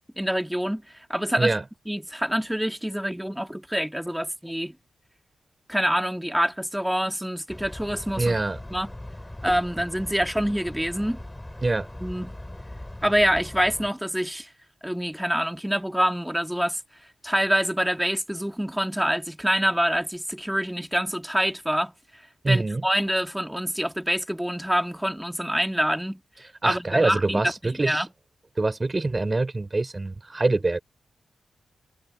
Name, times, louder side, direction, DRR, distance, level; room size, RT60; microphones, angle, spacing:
voice 1, 0.2-0.8 1.1-1.5 1.9-4.8 5.7-8.4 8.7-8.9 9.4-11.2 12.0-12.3 13.0-14.5 14.8-16.8 17.2-21.9 22.5-26.2 26.6-28.1, equal, 5° right, 1.7 m, -26 dB
sound 1, 7.5-13.9, left 1 dB, 15° left, 7.1 m, -40 dB
voice 2, 8.2-8.6 11.6-11.9 22.4-22.8 26.6-28.0 28.6-30.8, right 2 dB, 30° right, 3.4 m, -24 dB
cardioid pair, 70°, 0 cm